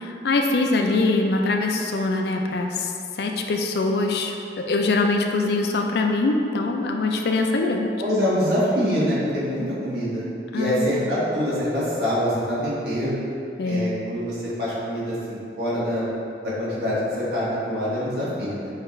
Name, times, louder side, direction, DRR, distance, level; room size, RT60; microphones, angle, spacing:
voice 1, 0.0-2.9 3.2-7.9 10.5-10.8 13.6-13.9, left 3 dB, 65° left, 3 dB, 0.4 m, -23 dB
voice 2, 8.0-10.3 10.5-13.1 13.6-16.1 16.4-18.7, equal, 65° right, -9 dB, 1.3 m, -25 dB
6.4 x 2.4 x 3.1 m, 2.6 s
head